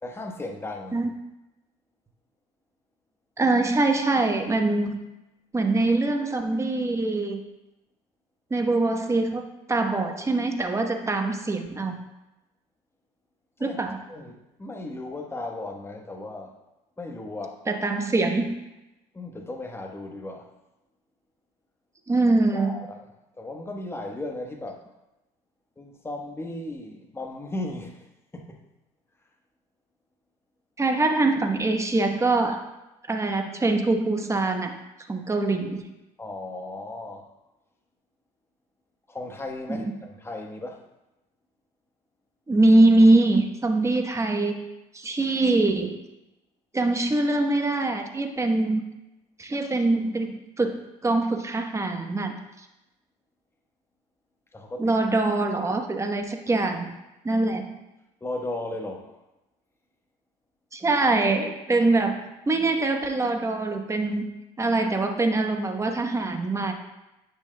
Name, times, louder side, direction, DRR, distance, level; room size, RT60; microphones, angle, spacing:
voice 1, 0.0-1.1 13.6-13.8 14.1-16.6 17.0-17.6 19.1-20.5 22.5-23.1 23.4-24.8 25.8-28.1 28.3-28.6 36.2-37.3 39.1-40.8 54.5-54.9 58.2-59.2, left 2 dB, 15° left, 2 dB, 1.1 m, -36 dB
voice 2, 3.4-4.9 5.5-7.4 8.5-9.4 9.7-11.9 13.6-14.0 17.7-18.6 22.1-22.7 30.8-32.6 33.1-34.7 35.1-35.8 39.7-39.8 42.5-44.6 44.9-46.0 46.7-48.8 49.4-52.7 54.8-56.9 57.2-57.6 60.7-64.3 64.6-66.7, right 2 dB, 20° right, 5 dB, 1.0 m, -23 dB
10.0 x 6.3 x 2.2 m, 0.97 s
supercardioid pair, 80°, 16 cm